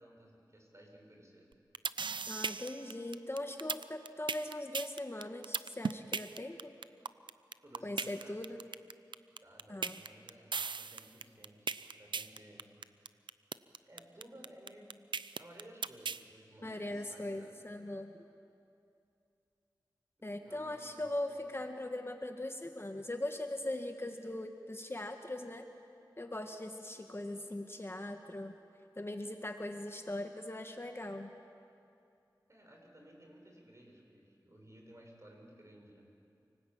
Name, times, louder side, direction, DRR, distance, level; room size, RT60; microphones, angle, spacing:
voice 1, 0.0-1.5 7.6-8.4 9.4-11.7 12.0-12.6 13.9-14.9 15.4-17.5 20.2-21.1 32.5-36.1, right 1 dB, 40° right, 1 dB, 6.5 m, -57 dB
sound 1, 1.5-16.2, right 5 dB, 90° right, 0.5 m, -37 dB
voice 2, 2.3-6.7 7.8-8.6 9.7-10.0 16.6-18.1 20.2-25.6 26.2-28.5 29.0-31.3, left 1 dB, 30° left, 5 dB, 1.6 m, -40 dB
28.5 x 19.5 x 8.8 m, 2.5 s
wide cardioid pair, 50°, 8 cm